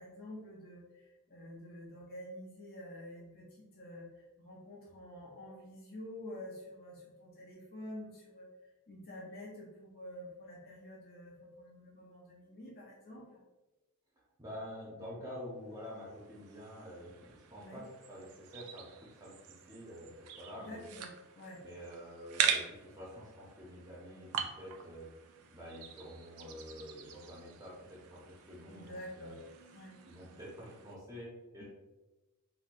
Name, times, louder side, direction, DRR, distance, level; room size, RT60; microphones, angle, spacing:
voice 1, 0.0-8.5 8.9-13.4 17.6-17.8 20.6-21.1 21.4-21.6 28.7-29.3 29.7-30.0, left 1 dB, 45° left, -5 dB, 0.6 m, -48 dB
voice 2, 14.4-20.9 21.6-25.1 25.5-29.4 30.0-31.6, equal, 15° right, -6 dB, 0.6 m, -48 dB
sound 1, 15.8-31.0, right 7 dB, 90° right, 0.4 m, -42 dB
4.2 x 2.1 x 2.5 m, 1.1 s
head